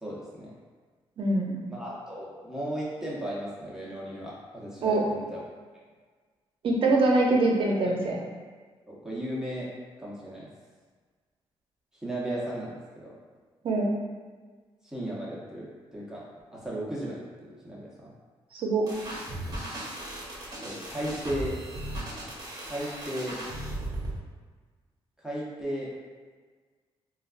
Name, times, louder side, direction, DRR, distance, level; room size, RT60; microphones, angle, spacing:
voice 1, 0.0-0.6 1.7-5.4 8.9-9.7 10.0-10.5 12.0-13.1 14.8-16.2 16.5-18.1 20.6-21.6 22.6-23.4 25.2-25.9, right 1 dB, 5° right, -7 dB, 0.8 m, -35 dB
voice 2, 1.2-1.6 4.8-5.0 6.6-8.2 13.6-13.9 18.5-18.9, right 2 dB, 60° right, -1 dB, 0.6 m, -23 dB
sound 1, 18.9-24.2, right 1 dB, 40° right, 0.9 m, -37 dB
3.2 x 2.3 x 2.4 m, 1.5 s
cardioid pair, 85°, 10 cm